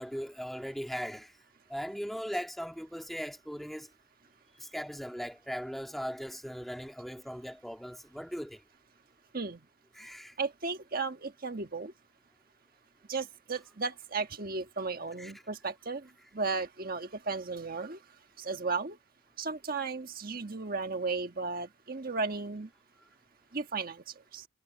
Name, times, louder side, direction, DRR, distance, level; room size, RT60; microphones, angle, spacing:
voice 1, 0.0-1.3 1.7-3.9 4.6-8.6 10.0-10.3 15.2-15.3, equal, ahead, 1.8 m, -39 dB
voice 2, 9.3-9.6 10.4-11.9 13.1-19.0 19.4-22.7 23.5-24.5, right 4 dB, 45° right, 1.4 m, -35 dB
head